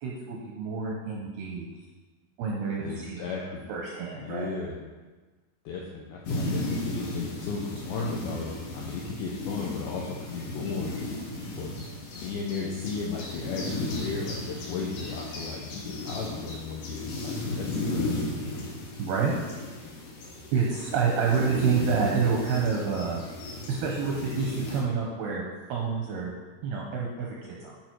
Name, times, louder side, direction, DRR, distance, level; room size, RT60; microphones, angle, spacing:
voice 1, 0.0-1.7 2.4-3.2 3.7-4.5 19.0-19.4 20.5-23.2 23.7-26.3 26.6-27.7, right 5 dB, 75° right, -2 dB, 2.4 m, -28 dB
voice 2, 2.8-3.7 4.2-4.8 5.7-10.9 11.6-11.8 12.2-18.5, left 4 dB, 80° left, -3 dB, 2.2 m, -35 dB
sound 1, 6.3-24.8, left 2 dB, 60° left, 2.3 m, -35 dB
13.0 x 5.3 x 4.6 m, 1.3 s
omnidirectional pair, 5.7 m